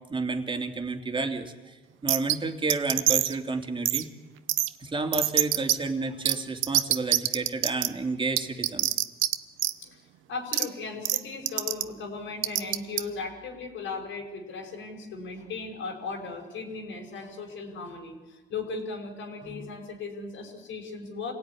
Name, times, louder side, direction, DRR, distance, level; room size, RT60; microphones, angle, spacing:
voice 1, 0.1-4.1 4.8-9.0, right 3 dB, 25° right, 4 dB, 2.8 m, -31 dB
sound 1, 2.1-2.3 2.7-3.3 3.8-4.0 4.5-4.7 5.1-5.7 6.2-6.3 6.6-7.9 8.4-9.3 9.6-9.7 10.5-10.6 11.0-11.2 11.5-11.8 12.4-13.0, right 15 dB, 90° right, 0.9 m, -23 dB
voice 2, 10.3-21.3, left 4 dB, 80° left, -1 dB, 5.6 m, -37 dB
26.5 x 17.5 x 9.9 m, 1.2 s
cardioid pair, 90°, 20 cm